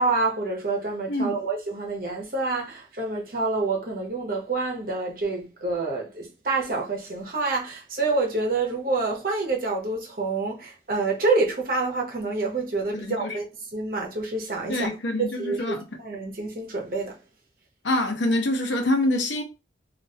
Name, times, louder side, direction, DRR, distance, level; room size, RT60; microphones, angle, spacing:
voice 1, 0.0-14.9 15.4-17.2, right 3 dB, 50° right, 0.9 m, -27 dB
voice 2, 12.9-13.4 14.7-15.8 17.8-19.4, left 1 dB, 80° left, 0.8 m, -25 dB
3.0 x 2.5 x 2.7 m
head